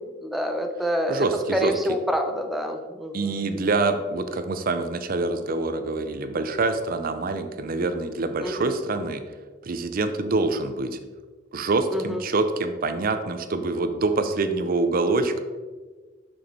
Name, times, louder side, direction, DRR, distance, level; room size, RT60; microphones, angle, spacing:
voice 1, 0.2-1.3 1.5-3.4 8.4-8.7 11.9-12.2, equal, ahead, 4 dB, 0.5 m, -27 dB
voice 2, 1.1-1.7 3.1-9.2 9.6-11.0 11.5-15.4, right 3 dB, 50° right, 9 dB, 0.5 m, -25 dB
6.2 x 6.2 x 4.1 m, 1.4 s
head